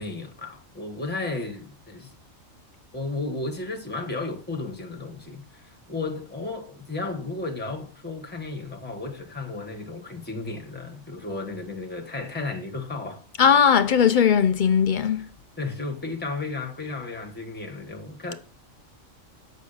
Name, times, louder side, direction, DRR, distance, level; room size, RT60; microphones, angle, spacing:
voice 1, 0.0-2.1 2.9-13.2 15.2-15.3 15.6-18.3, left 3 dB, 10° left, 1.4 m, -33 dB
voice 2, 13.4-15.3, left 7 dB, 60° left, 0.5 m, -19 dB
7.4 x 6.2 x 5.5 m
omnidirectional pair, 1.4 m